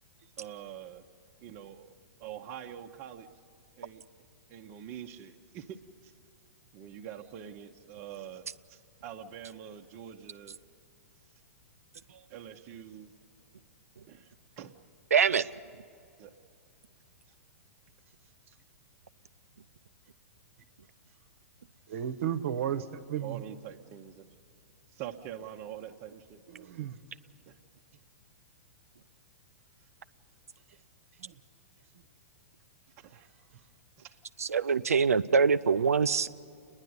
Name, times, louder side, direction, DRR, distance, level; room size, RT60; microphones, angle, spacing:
voice 1, 0.4-1.0 1.4-3.3 3.8-4.0 4.5-6.1 6.7-8.4 8.7-10.6 12.3-13.1 14.1-14.7 16.2-16.3 23.2-24.2 24.9-26.7 27.5-27.6 33.0-33.3 34.0-34.2, right 10 dB, 40° right, 2 dB, 0.9 m, -45 dB
voice 2, 15.1-15.5 34.4-36.3, right 6 dB, 85° right, 11 dB, 0.5 m, -24 dB
voice 3, 21.9-23.4 26.5-27.0 31.2-31.3, right 9 dB, 65° right, 8 dB, 1.0 m, -34 dB
29.0 x 10.5 x 9.5 m, 2.5 s
hypercardioid pair, 115°, 8 cm